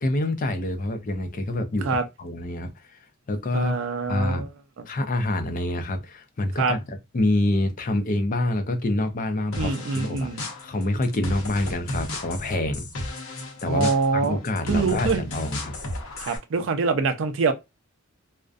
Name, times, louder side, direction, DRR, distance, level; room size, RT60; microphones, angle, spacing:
voice 1, 0.0-2.7 3.3-3.8 4.1-4.5 4.9-10.3 10.6-12.9 13.2-13.3 13.6-15.7, left 1 dB, 40° left, 0.4 m, -26 dB
voice 2, 3.5-4.5 4.8-4.9 6.6-6.8 9.5-10.4 13.7-15.2 16.2-17.5, right 4 dB, 65° right, 0.4 m, -25 dB
sound 1, 9.5-16.4, left 1 dB, 75° left, 0.7 m, -34 dB
2.5 x 2.1 x 2.4 m
head